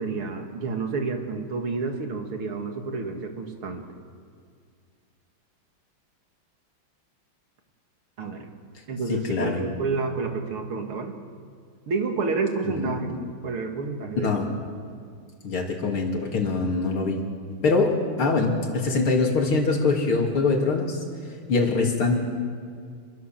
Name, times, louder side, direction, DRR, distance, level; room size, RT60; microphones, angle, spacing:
voice 1, 0.0-3.8 8.2-8.5 8.9-11.2 11.9-14.3, right 4 dB, 90° right, 4 dB, 3.1 m, -29 dB
voice 2, 9.1-9.6 12.8-13.1 14.2-14.5 15.4-17.2 17.6-21.0 21.5-22.2, left 3 dB, 85° left, 1 dB, 3.8 m, -23 dB
27.5 x 22.5 x 7.5 m, 2.1 s
omnidirectional pair, 2.3 m